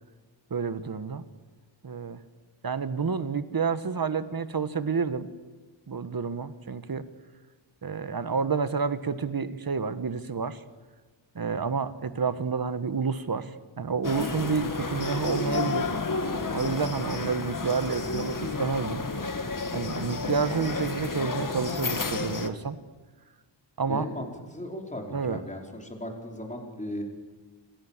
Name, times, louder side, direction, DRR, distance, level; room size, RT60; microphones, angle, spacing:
voice 1, 0.5-1.2 1.8-2.2 2.6-5.3 5.9-7.0 7.8-10.6 11.3-15.9 16.5-19.0 19.7-22.8 23.8-24.1 25.1-25.4, right 5 dB, 50° right, 12 dB, 1.6 m, -29 dB
sound 1, 14.0-22.5, left 4 dB, 40° left, 2.1 m, -31 dB
voice 2, 23.9-27.0, left 1 dB, 15° left, 2 dB, 5.0 m, -37 dB
27.0 x 26.0 x 7.5 m, 1.3 s
wide cardioid pair, 115°, 47 cm